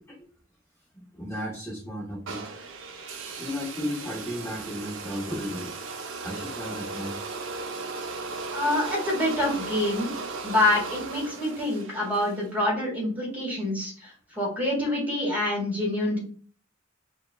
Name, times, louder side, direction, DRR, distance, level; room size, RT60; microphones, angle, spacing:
voice 1, 0.9-2.5 3.4-5.7 6.2-7.2, equal, 15° left, -6 dB, 0.8 m, -34 dB
sound 1, 2.3-12.4, right 3 dB, 70° right, 0.6 m, -36 dB
voice 2, 8.5-10.1 10.4-16.2, left 1 dB, 10° right, -3 dB, 1.6 m, -26 dB
6.8 x 2.3 x 2.3 m, 0.43 s
head